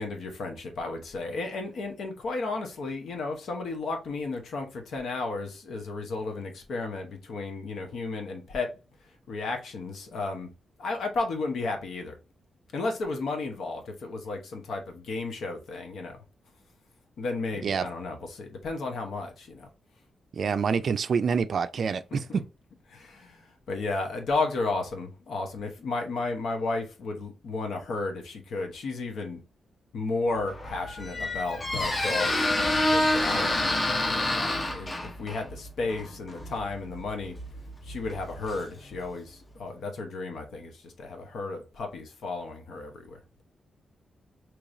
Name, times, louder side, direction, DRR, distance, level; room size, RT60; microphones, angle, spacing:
voice 1, 0.0-8.7 9.3-10.5 10.8-12.2 12.7-16.2 17.2-19.7 22.1-22.4 22.9-29.4 29.9-32.5 32.9-33.7 34.1-37.4 37.8-43.2, left 3 dB, 75° left, 1.0 m, -33 dB
voice 2, 20.3-22.4, right 6 dB, 55° right, 0.3 m, -27 dB
Squeak, 30.4-39.1, left 1 dB, 25° left, 0.7 m, -29 dB
Boom, 31.7-35.3, left 4 dB, 55° left, 0.7 m, -41 dB
4.7 x 3.1 x 2.6 m
wide cardioid pair, 130°, 0 cm